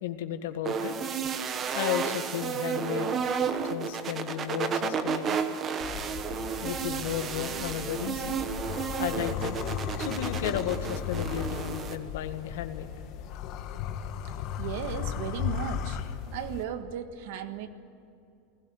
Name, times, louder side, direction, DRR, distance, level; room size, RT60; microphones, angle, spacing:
voice 1, 0.0-1.0 1.7-3.2 3.7-5.4 6.6-8.4 9.0-9.6 10.0-12.9, left 11 dB, 90° left, 8 dB, 1.7 m, -34 dB
sound 1, 0.6-12.0, right 6 dB, 25° right, 1.1 m, -32 dB
sound 2, 5.8-16.6, left 8 dB, 40° left, 1.3 m, -36 dB
voice 2, 14.6-16.0 16.3-17.7, right 9 dB, 65° right, 9 dB, 1.5 m, -35 dB
19.5 x 17.0 x 9.8 m, 2.6 s
supercardioid pair, 170°, 0 cm